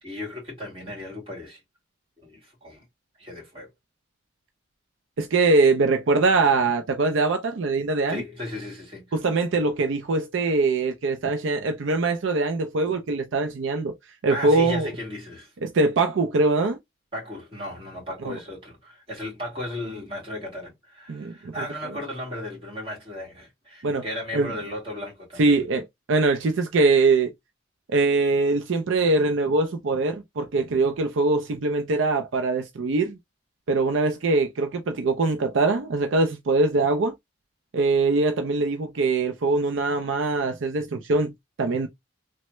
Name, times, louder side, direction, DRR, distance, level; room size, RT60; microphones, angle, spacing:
voice 1, 0.0-1.6 2.2-2.8 3.2-3.7 8.1-9.2 14.3-15.5 17.1-25.6, left 1 dB, 25° right, 1.8 m, -35 dB
voice 2, 5.2-8.2 9.1-13.9 14.2-14.9 15.6-16.8 18.2-18.3 21.1-21.5 23.8-24.0 24.3-24.5 25.4-25.8 26.1-27.3 27.9-33.2 33.7-37.1 37.7-41.3 41.6-41.9, right 3 dB, 70° right, 0.4 m, -22 dB
3.2 x 2.1 x 2.9 m
head